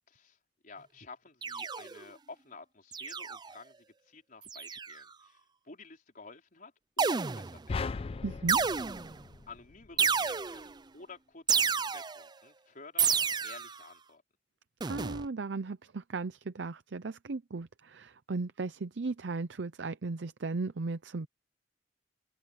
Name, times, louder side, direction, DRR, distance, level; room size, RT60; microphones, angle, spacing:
voice 1, 0.1-0.4 0.6-8.1 9.5-14.2, left 4 dB, 50° left, 4.6 m, -52 dB
sound 1, 1.4-2.1 2.9-3.5 4.5-5.0 7.0-7.7 8.5-9.2 10.0-10.8 11.5-12.3 13.0-13.8 14.8-15.3, right 6 dB, 25° right, 0.5 m, -30 dB
sound 2, 7.7-10.1, left 4 dB, 30° left, 0.4 m, -38 dB
voice 2, 8.2-8.6 14.9-21.3, right 3 dB, 70° right, 0.6 m, -36 dB
head